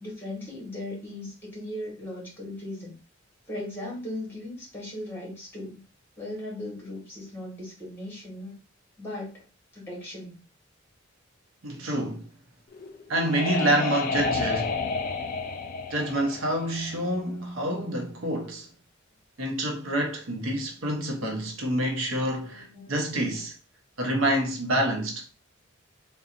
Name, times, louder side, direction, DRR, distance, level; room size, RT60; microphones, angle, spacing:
voice 1, 0.0-2.9 3.5-5.8 6.2-8.5 9.0-9.4 9.7-10.4 21.9-22.9 24.4-24.5, left 1 dB, 10° left, 1.4 m, -38 dB
voice 2, 11.6-12.3 13.1-14.7 15.9-18.7 19.4-23.5 24.0-25.2, right 1 dB, 75° right, 0.8 m, -27 dB
sound 1, 12.7-17.3, left 4 dB, 40° left, 0.3 m, -31 dB
3.7 x 2.3 x 2.5 m
head